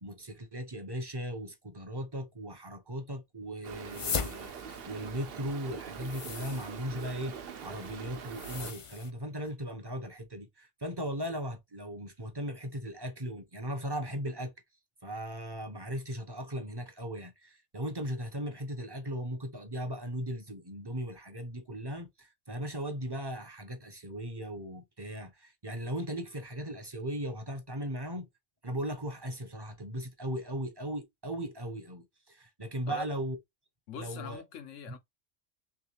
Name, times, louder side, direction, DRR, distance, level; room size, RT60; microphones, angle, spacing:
voice 1, 0.0-4.5 4.9-14.5 15.0-28.3 28.6-33.4 34.0-34.4, equal, 25° right, 0.7 m, -37 dB
Stream, 3.6-8.7, right 7 dB, 60° right, 0.8 m, -44 dB
sound 1, 3.7-9.1, left 6 dB, 55° left, 0.3 m, -40 dB
voice 2, 33.9-35.0, left 7 dB, 85° left, 1.1 m, -43 dB
3.4 x 3.2 x 2.9 m
omnidirectional pair, 1.3 m